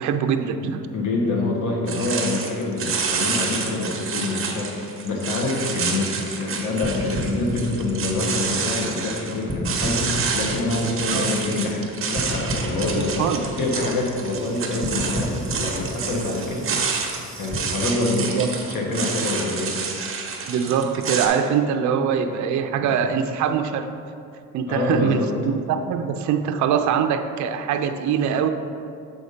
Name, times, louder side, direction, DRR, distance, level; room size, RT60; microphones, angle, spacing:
voice 1, 0.0-0.9 11.1-11.3 12.9-13.5 18.2-18.5 20.5-23.9 24.5-28.5, right 7 dB, 55° right, 7 dB, 0.5 m, -23 dB
voice 2, 0.9-6.1 6.4-16.7 17.4-18.3 18.7-19.8 24.7-25.3, left 2 dB, 60° left, -1 dB, 1.4 m, -26 dB
sound 1, 1.9-21.3, right 5 dB, 40° right, 0.9 m, -29 dB
sound 2, 6.8-9.2 9.5-11.9 12.1-17.6, equal, ahead, 1.3 m, -32 dB
7.1 x 4.1 x 5.0 m, 2.5 s
cardioid pair, 120°, 35 cm